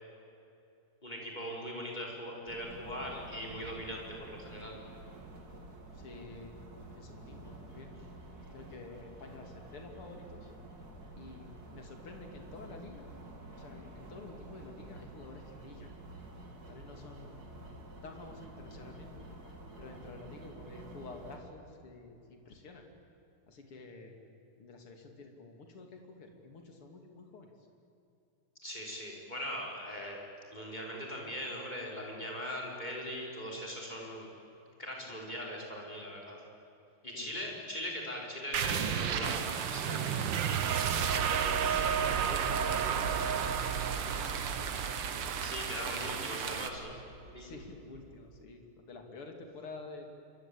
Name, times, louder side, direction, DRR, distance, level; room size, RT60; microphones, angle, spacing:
voice 1, 1.0-4.8 28.6-30.2 30.5-34.3 34.8-36.4 37.0-40.2 41.5-42.0 45.4-47.0 47.2-47.5, equal, 20° left, -2 dB, 5.3 m, -40 dB
sound 1, 2.5-21.4, right 2 dB, 45° right, 3.7 m, -50 dB
voice 2, 5.9-6.6 6.9-8.0 8.5-10.5 11.2-13.1 13.5-15.9 16.7-17.5 18.0-19.1 19.8-22.8 23.5-24.2 24.6-27.5 35.0-35.1 37.1-37.6 40.3-40.7 41.0-43.7 44.1-44.9 45.8-46.4 47.4-50.1, left 3 dB, 80° left, 3 dB, 3.6 m, -50 dB
sound 2, 38.5-47.8, right 7 dB, 60° right, 1.8 m, -33 dB
sound 3, 39.2-46.7, right 7 dB, 90° right, 2.3 m, -37 dB
27.5 x 24.0 x 8.7 m, 2.8 s
omnidirectional pair, 2.4 m